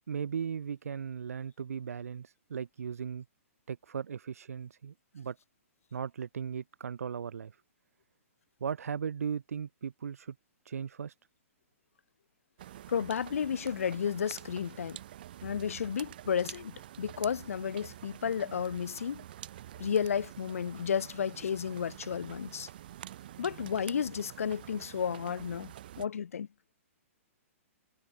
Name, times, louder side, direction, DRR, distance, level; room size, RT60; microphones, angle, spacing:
voice 1, 0.1-3.2 3.7-5.4 5.9-7.5 8.6-10.3 10.6-11.1, right 7 dB, 85° right, 2.9 m, -37 dB
sound 1, 12.6-26.1, right 12 dB, 40° right, 5.0 m, -47 dB
voice 2, 12.9-15.0 15.4-19.2 19.8-22.7 23.4-26.5, left 7 dB, 75° left, 6.9 m, -32 dB
hypercardioid pair, 175°, 8 cm